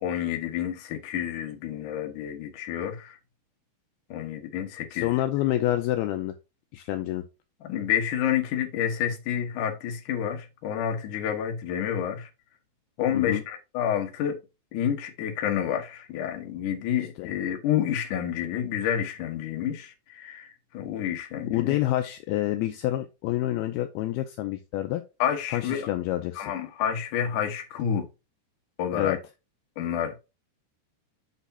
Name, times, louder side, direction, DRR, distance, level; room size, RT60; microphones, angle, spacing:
voice 1, 0.0-3.2 4.1-5.2 7.6-12.3 13.0-14.4 14.7-21.8 25.2-25.9 26.4-28.1 28.8-29.2 29.8-30.2, left 9 dB, 65° left, 2.3 m, -29 dB
voice 2, 4.9-6.4 6.7-7.2 13.1-13.4 17.2-17.3 21.5-25.0 25.5-26.5 28.9-29.2, left 14 dB, 80° left, 2.4 m, -27 dB
8.2 x 6.3 x 2.8 m
omnidirectional pair, 4.9 m